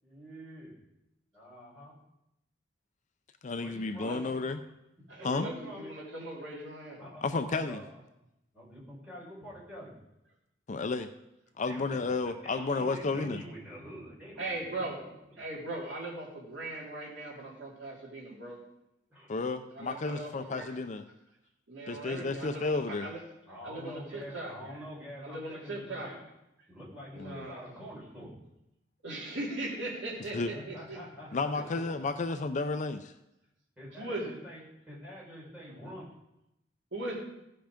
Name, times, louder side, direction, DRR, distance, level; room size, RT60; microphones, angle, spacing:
voice 1, 0.0-0.7 1.3-1.9 3.6-4.3 5.2-5.9 7.0-7.8 8.5-9.9 11.6-14.9 15.3-15.4 19.1-19.4 23.4-26.2 26.7-28.3 30.5-31.7 33.8-34.6 34.9-36.0, equal, 10° right, -6 dB, 4.8 m, -46 dB
voice 2, 3.4-4.6 5.2-5.5 7.2-7.8 10.7-11.1 11.6-13.4 19.3-21.0 21.9-23.1 27.2-27.5 30.3-30.5 31.3-33.1, left 3 dB, 40° left, 9 dB, 0.5 m, -32 dB
voice 3, 5.1-7.0 14.4-15.0 15.4-18.6 19.7-20.6 21.7-23.2 23.6-24.8 25.2-26.1 27.1-27.8 29.0-31.0 31.5-31.8 33.9-34.4 36.9-37.1, right 2 dB, 65° right, -3 dB, 3.0 m, -39 dB
15.5 x 5.8 x 5.1 m, 0.86 s
head